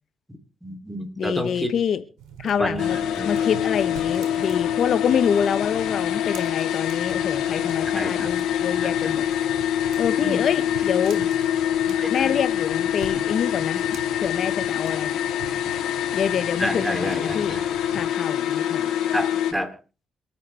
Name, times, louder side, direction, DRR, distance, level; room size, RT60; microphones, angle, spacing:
voice 1, 0.6-1.7 2.6-3.4 7.9-8.3 8.8-9.1 10.2-10.4 11.2-11.3 12.0-12.3 16.6-17.6 19.1-19.7, equal, 5° right, 7 dB, 3.1 m, -30 dB
voice 2, 1.2-2.0 2.4-3.0 3.2-9.2 10.0-11.2 12.1-13.8 14.2-15.1 16.1-17.6 17.9-18.9, left 8 dB, 60° left, 12 dB, 0.9 m, -26 dB
sound 1, 2.2-18.1, right 8 dB, 90° right, 4.7 m, -43 dB
sound 2, 2.8-19.5, left 10 dB, 85° left, 3.2 m, -25 dB
27.5 x 9.4 x 3.4 m, 0.33 s
cardioid pair, 90°, 0 cm